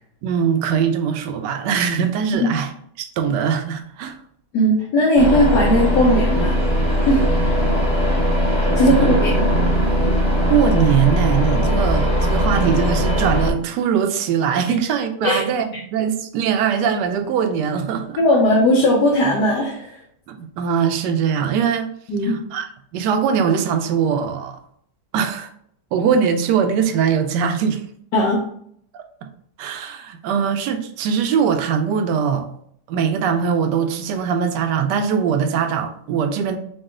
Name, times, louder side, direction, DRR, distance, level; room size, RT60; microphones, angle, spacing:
voice 1, 0.2-2.7 3.0-4.2 8.9-9.2 10.5-18.2 20.3-21.9 22.2-22.7 22.9-24.6 25.1-25.5 25.9-27.8 28.9-29.3 29.6-32.5 32.9-36.6, right 7 dB, 80° right, 1.2 m, -21 dB
voice 2, 4.5-6.6 7.1-7.2 8.8-9.3 14.7-14.8 15.2-15.4 18.2-20.0 22.1-22.4 28.1-28.4, left 1 dB, 75° left, 1.4 m, -17 dB
sound 1, 5.2-13.5, equal, 25° left, 1.0 m, -19 dB
4.7 x 2.4 x 3.6 m
omnidirectional pair, 1.8 m